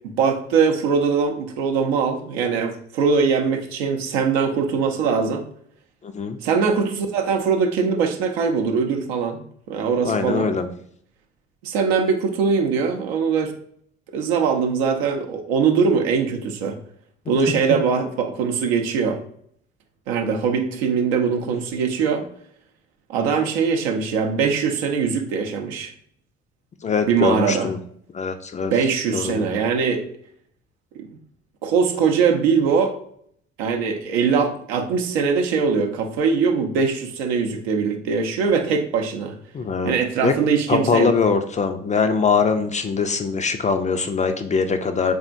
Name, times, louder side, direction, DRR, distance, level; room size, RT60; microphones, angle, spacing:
voice 1, 0.2-5.4 6.4-10.5 11.6-13.5 14.1-16.8 17.3-19.2 20.1-22.3 23.1-25.9 27.1-27.7 28.7-30.0 31.0-31.1 31.6-33.0 33.6-39.4 39.8-41.1, right 5 dB, 75° right, 4 dB, 0.6 m, -21 dB
voice 2, 6.0-6.4 10.0-10.7 26.8-27.8 28.1-28.7 29.1-29.6 39.5-39.9 40.2-40.3 40.7-45.1, left 5 dB, 25° left, 7 dB, 0.4 m, -22 dB
3.6 x 3.5 x 2.5 m, 0.65 s
figure-of-eight pair, 50°, 32 cm